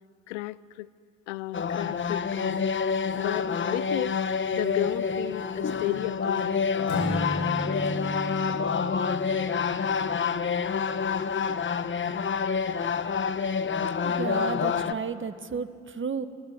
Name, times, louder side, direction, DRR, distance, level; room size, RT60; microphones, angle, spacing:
voice 1, 0.3-0.9 1.3-2.7 3.2-4.2 4.5-6.6, left 19 dB, 85° left, 19 dB, 0.6 m, -33 dB
sound 1, 1.5-14.9, left 6 dB, 35° left, 1.1 m, -28 dB
Acoustic guitar / Strum, 6.9-10.8, left 1 dB, 60° left, 3.0 m, -34 dB
voice 2, 13.8-16.3, right 5 dB, 35° right, 12 dB, 1.5 m, -33 dB
22.5 x 22.0 x 9.3 m, 2.1 s
hypercardioid pair, 50°, 35 cm